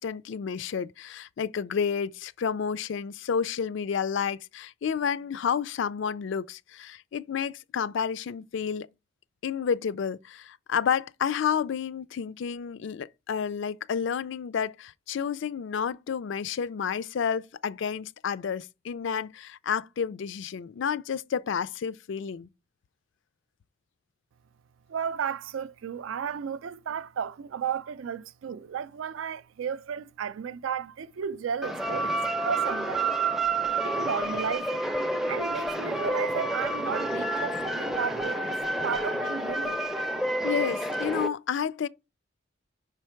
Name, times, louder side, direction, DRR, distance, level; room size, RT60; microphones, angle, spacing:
voice 1, 0.0-8.9 9.4-22.5 40.4-41.9, left 7 dB, 60° left, 0.3 m, -30 dB
voice 2, 24.9-33.1 33.8-34.8 35.2-38.5 38.8-39.8, right 7 dB, 70° right, 0.4 m, -33 dB
sound 1, 31.6-41.3, right 2 dB, ahead, 0.4 m, -29 dB
5.6 x 4.5 x 4.4 m
head